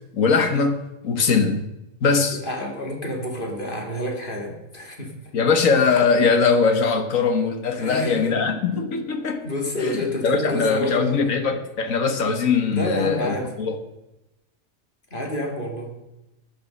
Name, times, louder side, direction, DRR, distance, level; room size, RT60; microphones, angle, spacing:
voice 1, 0.1-0.8 1.0-1.7 2.0-2.4 5.3-9.5 9.8-13.8, left 5 dB, 75° left, 7 dB, 1.8 m, -21 dB
voice 2, 2.3-5.1 7.7-8.4 9.4-11.4 12.7-13.6 15.1-15.9, left 1 dB, 40° left, 1 dB, 2.9 m, -29 dB
14.5 x 10.5 x 5.4 m, 0.94 s
omnidirectional pair, 1.4 m